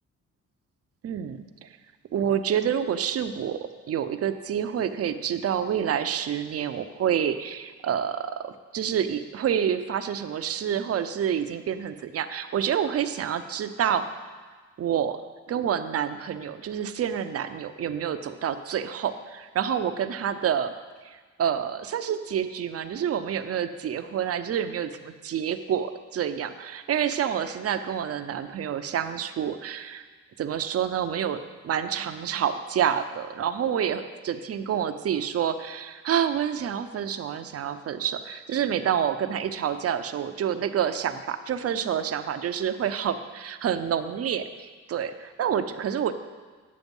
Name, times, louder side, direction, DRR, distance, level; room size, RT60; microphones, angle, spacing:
voice 1, 1.0-1.7 2.1-3.6 3.9-14.0 14.8-15.2 15.5-20.7 21.0-30.0 30.4-46.1, right 9 dB, 50° right, 9 dB, 0.7 m, -28 dB
9.5 x 7.0 x 5.4 m, 1.4 s
cardioid pair, 90°, 30 cm